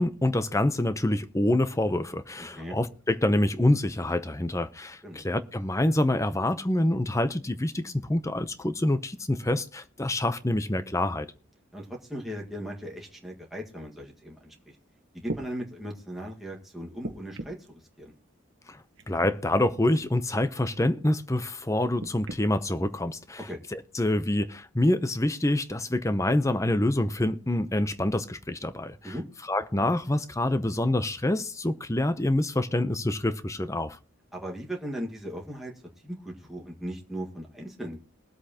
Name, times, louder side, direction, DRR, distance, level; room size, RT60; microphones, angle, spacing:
voice 1, 0.0-11.3 18.7-18.8 19.1-23.4 23.7-29.0 29.5-34.0, left 1 dB, 15° left, 0.7 m, -26 dB
voice 2, 2.4-2.8 5.0-5.2 11.7-14.7 15.1-18.1 23.5-23.6 29.0-29.2 34.3-35.7 36.0-38.0, equal, ahead, 1.7 m, -38 dB
sound 1, 14.7-14.8 15.2-15.5 17.0-17.7 19.0-19.3 19.9-20.1 22.0-22.4 23.3-23.4, right 2 dB, 60° right, 1.1 m, -38 dB
21.5 x 8.2 x 2.9 m
head